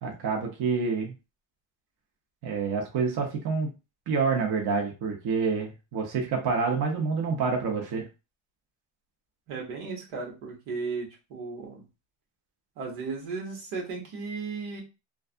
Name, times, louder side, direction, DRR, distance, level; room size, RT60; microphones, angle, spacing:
voice 1, 0.0-1.1 2.4-3.7 4.1-8.0, right 5 dB, 50° right, 0 dB, 0.9 m, -27 dB
voice 2, 9.5-11.8 12.8-14.8, right 4 dB, 85° right, -1 dB, 1.2 m, -35 dB
2.5 x 2.3 x 2.4 m, 0.28 s
cardioid pair, 110°, 48 cm